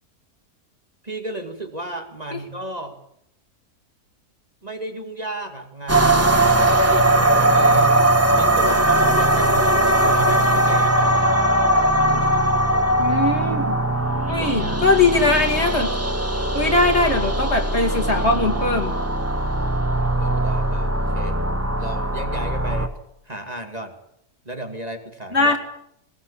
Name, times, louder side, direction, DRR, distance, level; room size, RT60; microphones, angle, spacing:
voice 1, 1.0-3.0 4.6-8.0 8.3-11.3 12.1-12.5 14.4-15.0 19.8-21.4 21.8-22.9 23.2-23.9 24.4-25.6, right 1 dB, 25° right, 3 dB, 2.5 m, -34 dB
sound 1, 5.9-22.9, right 1 dB, 10° right, 1.3 m, -19 dB
voice 2, 13.0-13.8 14.3-15.9 16.5-18.9 25.3-25.6, left 3 dB, 45° left, 2 dB, 2.9 m, -20 dB
20.5 x 20.5 x 8.6 m, 0.75 s
omnidirectional pair, 1.6 m